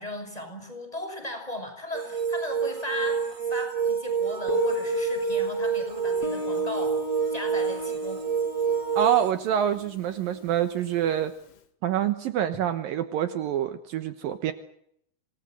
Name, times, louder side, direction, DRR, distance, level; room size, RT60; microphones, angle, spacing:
voice 1, 0.0-7.0 7.3-8.2, left 1 dB, 10° left, 5 dB, 6.2 m, -37 dB
sound 1, 1.9-9.3, right 6 dB, 35° right, 2.6 m, -28 dB
Guitar, 4.5-11.1, left 5 dB, 50° left, 2.4 m, -35 dB
voice 2, 9.0-11.3 11.8-14.5, right 10 dB, 70° right, 10 dB, 2.7 m, -26 dB
27.0 x 19.5 x 7.6 m, 0.70 s
omnidirectional pair, 4.5 m